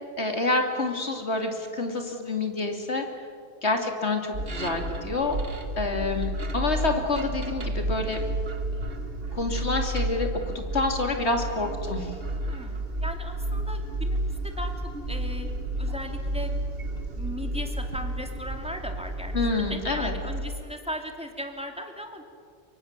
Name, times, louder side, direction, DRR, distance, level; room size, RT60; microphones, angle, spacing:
voice 1, 0.2-3.0 3.6-5.4 5.8-8.2 9.3-12.1 19.3-20.1, left 3 dB, 70° left, 4 dB, 3.1 m, -28 dB
sound 1, 4.3-20.6, right 1 dB, 55° right, 1.9 m, -31 dB
voice 2, 12.5-14.7 15.1-15.5 15.8-16.5 17.2-22.3, equal, 5° right, 4 dB, 2.6 m, -37 dB
25.0 x 23.5 x 7.4 m, 2.2 s
omnidirectional pair, 1.2 m